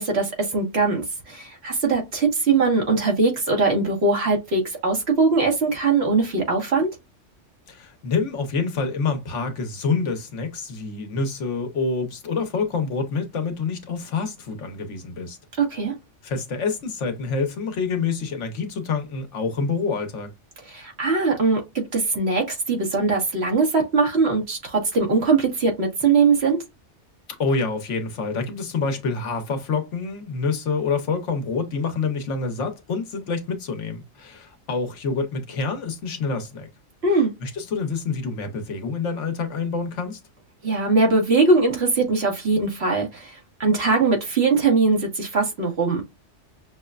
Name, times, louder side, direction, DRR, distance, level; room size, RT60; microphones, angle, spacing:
voice 1, 0.0-6.9 15.6-15.9 20.7-21.6 21.9-26.6 37.0-37.3 40.6-46.0, right 4 dB, 60° right, 1.6 m, -21 dB
voice 2, 7.7-15.4 16.2-20.3 27.4-36.7 37.1-40.2, left 4 dB, 80° left, 1.2 m, -27 dB
6.1 x 2.1 x 2.4 m
omnidirectional pair, 1.2 m